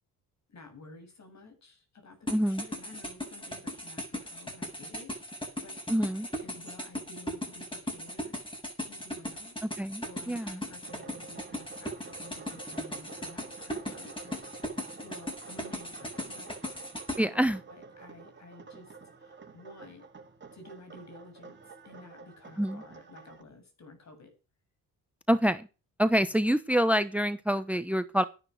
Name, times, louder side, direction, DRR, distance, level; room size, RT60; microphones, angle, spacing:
voice 1, 0.5-8.4 8.9-16.6 17.1-20.1 20.5-24.3, left 2 dB, 50° left, 7.8 m, -52 dB
sound 1, 2.3-17.2, equal, 15° left, 7.7 m, -38 dB
voice 2, 2.3-2.6 5.9-6.3 9.8-10.6 17.2-17.6 22.6-22.8 25.3-25.7 26.0-28.2, equal, 5° right, 1.0 m, -26 dB
sound 2, 10.8-23.4, right 4 dB, 30° right, 4.8 m, -50 dB
12.5 x 11.0 x 6.4 m
cardioid pair, 85°, 36 cm